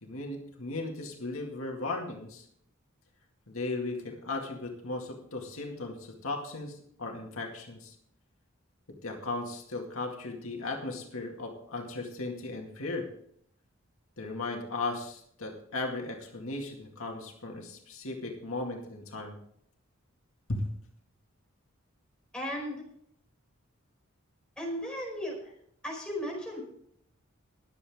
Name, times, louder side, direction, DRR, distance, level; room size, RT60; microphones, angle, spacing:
voice 1, 0.0-2.5 3.5-8.0 9.0-13.1 14.2-19.4 20.5-20.6, left 2 dB, 75° left, 1 dB, 2.1 m, -36 dB
voice 2, 22.3-22.8 24.6-25.5 25.8-26.6, equal, 5° left, -2 dB, 4.6 m, -35 dB
22.0 x 7.9 x 3.6 m, 0.68 s
head